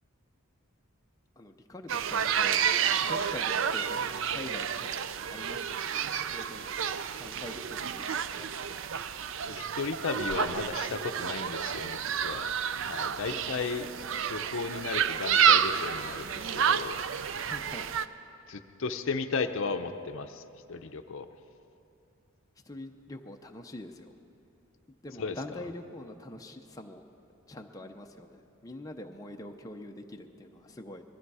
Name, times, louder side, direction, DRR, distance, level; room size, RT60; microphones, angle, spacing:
voice 1, 1.4-2.7 3.1-4.0 4.3-5.0 5.3-5.9 6.2-6.8 7.2-8.5 13.3-13.4 17.4-17.9 22.7-24.1 25.0-27.0 27.5-31.0, left 1 dB, 15° left, 3 dB, 0.6 m, -44 dB
sound 1, 1.9-18.0, right 7 dB, 60° right, 0.4 m, -30 dB
voice 2, 9.5-12.5 12.8-13.9 14.3-17.0 18.5-20.4 20.7-21.3 25.2-25.4, left 4 dB, 60° left, 8 dB, 0.6 m, -35 dB
20.5 x 13.0 x 4.8 m, 2.8 s
head